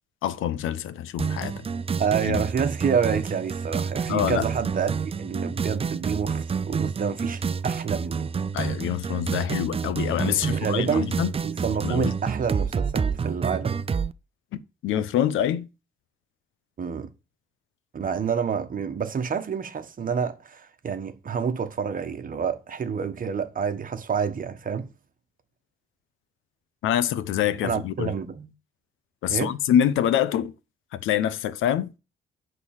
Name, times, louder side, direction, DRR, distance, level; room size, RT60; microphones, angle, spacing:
voice 1, 0.2-1.7 2.2-2.4 4.1-4.4 8.5-11.3 11.8-12.1 14.5-15.7 26.8-28.1 29.2-30.5 30.9-31.9, left 10 dB, 85° left, 0.9 m, -25 dB
sound 1, 1.2-14.1, right 6 dB, 30° right, 0.6 m, -29 dB
voice 2, 2.0-8.3 10.2-11.1 11.4-13.8 16.8-17.1 17.9-24.9 27.6-28.5 29.3-29.5, right 6 dB, 45° right, 1.5 m, -28 dB
11.0 x 4.0 x 7.3 m
cardioid pair, 90°, 20 cm